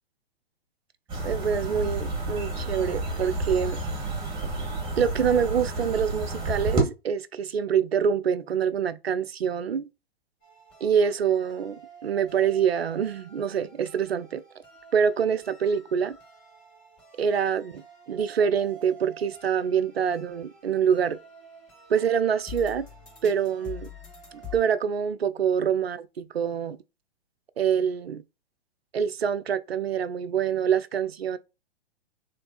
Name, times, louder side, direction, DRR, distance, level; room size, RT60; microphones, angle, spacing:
sound 1, 1.1-6.8, right 2 dB, 15° right, 1.9 m, -30 dB
voice 1, 1.2-3.8 5.0-9.9 10.8-14.4 14.9-16.2 17.2-21.2 21.9-22.9 23.2-23.9 24.3-26.8 27.6-28.2 28.9-31.4, right 7 dB, 85° right, 0.5 m, -25 dB
sound 2, 10.4-24.6, left 2 dB, 25° left, 2.7 m, -47 dB
3.3 x 3.3 x 4.0 m
figure-of-eight pair, 120°, 30 cm